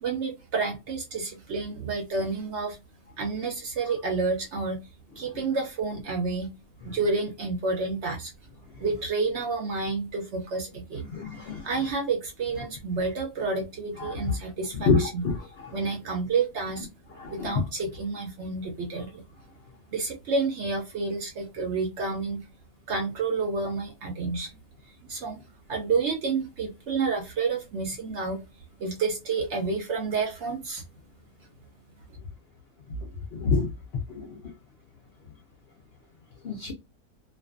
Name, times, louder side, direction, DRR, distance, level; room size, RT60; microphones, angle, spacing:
voice 1, 0.0-2.8 3.2-4.8 5.2-6.5 6.8-8.3 8.8-11.1 11.6-15.3 15.7-16.9 17.3-19.2 19.9-22.4 22.9-24.5 25.1-25.4 25.7-28.4 28.8-30.8, right 4 dB, 65° right, 0.7 m, -29 dB
voice 2, 11.1-11.6 14.9-15.3 17.2-17.5 33.4-33.7 36.4-36.7, left 4 dB, 65° left, 0.6 m, -25 dB
2.5 x 2.3 x 2.4 m
omnidirectional pair, 1.6 m